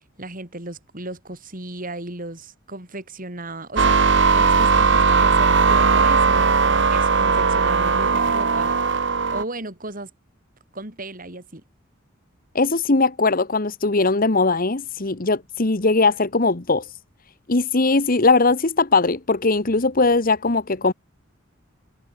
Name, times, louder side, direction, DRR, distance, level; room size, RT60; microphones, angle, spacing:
voice 1, 0.2-8.9 9.3-10.1 10.7-11.6, right 2 dB, 45° right, 6.6 m, -35 dB
sound 1, 3.8-9.4, right 4 dB, 60° right, 1.2 m, -18 dB
voice 2, 12.5-16.8 17.5-20.9, left 3 dB, 45° left, 1.3 m, -20 dB
head